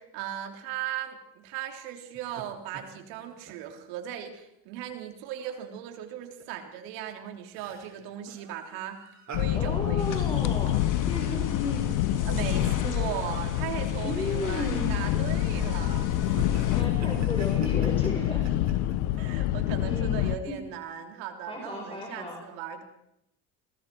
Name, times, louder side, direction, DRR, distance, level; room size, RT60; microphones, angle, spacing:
voice 1, 0.0-9.0 9.4-10.2 12.3-16.1 19.2-22.8, right 10 dB, 75° right, 4 dB, 3.5 m, -38 dB
sound 1, 2.1-2.4 2.7-3.7 4.1-4.2 4.7-4.9 5.7-5.8 6.2-6.4 6.9-11.9 12.3-12.4 13.2-13.4 14.0-14.5 14.9-15.5 16.0-19.2, right 5 dB, 35° right, 6.4 m, -45 dB
sound 2, 9.3-20.4, left 14 dB, 75° left, 1.1 m, -27 dB
voice 2, 9.5-12.0 14.0-15.2 16.7-18.5 19.8-20.1 20.5-20.6 21.5-22.5, left 2 dB, 10° left, 1 dB, 4.7 m, -34 dB
sound 3, 10.0-16.8, left 5 dB, 45° left, 3.4 m, -37 dB
29.0 x 21.0 x 4.7 m, 0.82 s
supercardioid pair, 85°, 45 cm